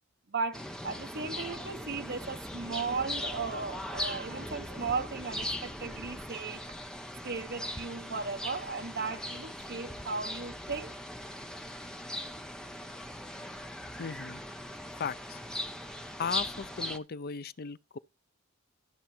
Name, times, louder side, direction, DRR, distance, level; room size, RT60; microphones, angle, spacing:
voice 1, 0.3-6.6 7.2-10.9, right 4 dB, 55° right, 1.3 m, -36 dB
sound 1, 0.5-17.0, left 1 dB, 5° left, 1.0 m, -39 dB
voice 2, 14.0-14.4 15.0-15.4 16.2-18.0, left 6 dB, 50° left, 0.5 m, -36 dB
13.5 x 6.9 x 4.4 m
head